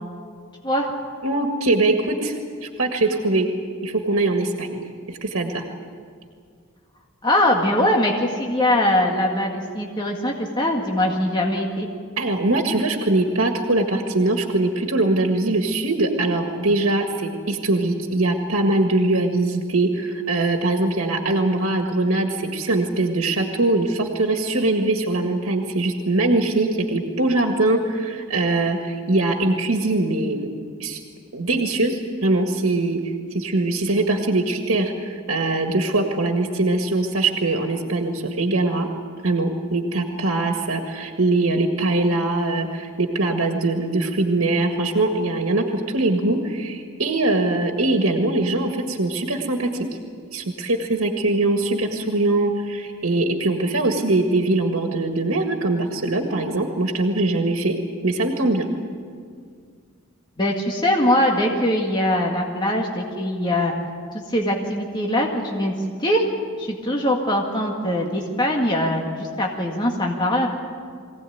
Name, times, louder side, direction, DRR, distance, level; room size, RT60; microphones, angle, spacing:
voice 1, 1.2-3.5 3.8-4.8 5.1-5.6 12.2-30.5 30.8-31.0 31.3-38.9 39.2-49.9 50.3-57.8 58.0-58.7, right 2 dB, 85° right, 3 dB, 1.7 m, -22 dB
voice 2, 7.2-11.9 60.4-63.7 64.3-65.7 66.0-66.2 66.6-70.5, left 1 dB, 20° left, 0 dB, 1.9 m, -22 dB
23.5 x 17.0 x 9.3 m, 2.1 s
head